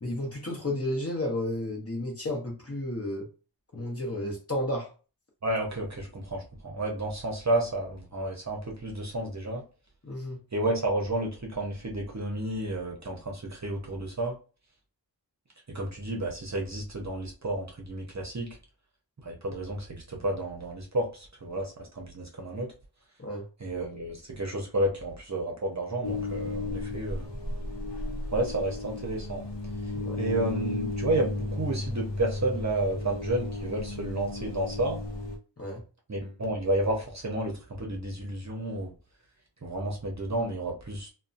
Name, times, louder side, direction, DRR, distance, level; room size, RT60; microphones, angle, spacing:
voice 1, 0.0-3.3 3.7-4.9 10.0-10.4 23.2-23.4 29.9-30.2 35.6-35.8, left 1 dB, 30° left, -1 dB, 0.9 m, -32 dB
voice 2, 5.4-9.6 10.5-14.3 15.7-18.6 19.2-22.7 23.6-27.3 28.3-29.4 30.2-35.0 36.1-38.9 39.6-41.1, right 1 dB, 40° right, 0 dB, 0.7 m, -31 dB
sound 1, 26.0-35.4, left 2 dB, 65° left, 0.8 m, -34 dB
2.6 x 2.2 x 2.5 m, 0.35 s
wide cardioid pair, 70°, 45 cm